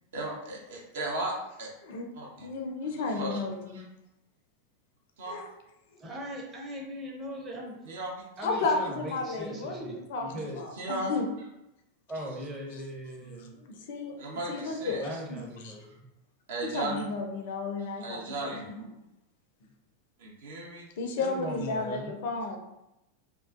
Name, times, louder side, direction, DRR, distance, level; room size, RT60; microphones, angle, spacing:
voice 1, 0.1-1.7 2.1-2.5 3.1-3.8 5.2-5.4 7.9-8.3 10.7-11.1 14.2-15.2 16.5-17.1 18.0-18.7 20.2-20.9, right 2 dB, 60° right, -2 dB, 0.6 m, -36 dB
voice 2, 2.4-3.8 5.3-5.5 8.4-11.2 13.3-14.2 14.5-15.0 15.3-15.7 16.7-18.9 21.0-22.6, left 3 dB, 50° left, 2 dB, 0.4 m, -33 dB
voice 3, 6.0-7.8 8.4-10.6 12.1-13.5 15.0-16.1 21.2-22.1, equal, 20° right, -3 dB, 0.7 m, -39 dB
2.2 x 2.2 x 2.4 m, 0.90 s
figure-of-eight pair, 90°, 0 cm